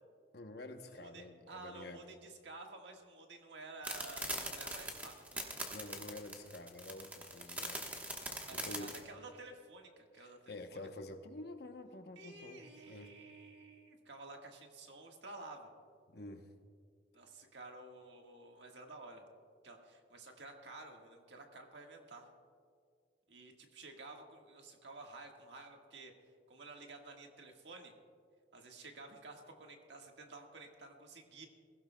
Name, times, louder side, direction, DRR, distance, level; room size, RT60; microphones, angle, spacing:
voice 1, 0.3-2.0 5.7-7.8 8.5-9.0 10.2-13.2 16.1-16.5, left 2 dB, 55° left, 6 dB, 0.9 m, -49 dB
voice 2, 1.0-5.5 8.5-10.8 12.1-15.7 17.1-19.2 19.6-22.3 23.3-26.1 26.5-27.9 28.5-31.5, right 2 dB, 65° right, 2 dB, 1.6 m, -52 dB
sound 1, 3.8-9.0, right 1 dB, 10° right, 1.2 m, -41 dB
22.0 x 15.5 x 2.3 m, 2.2 s
head